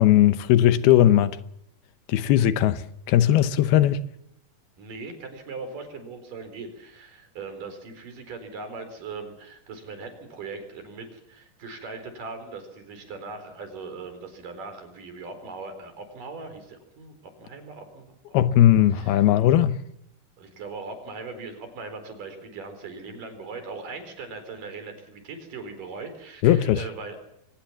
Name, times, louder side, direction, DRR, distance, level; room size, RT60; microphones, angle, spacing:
voice 1, 0.0-1.4 2.1-4.0 18.3-19.8 26.4-26.8, left 12 dB, 80° left, 2.9 m, -18 dB
voice 2, 4.8-18.1 18.5-18.6 18.9-19.2 20.4-27.2, right 4 dB, 60° right, 5.7 m, -39 dB
23.5 x 19.5 x 7.3 m
omnidirectional pair, 4.4 m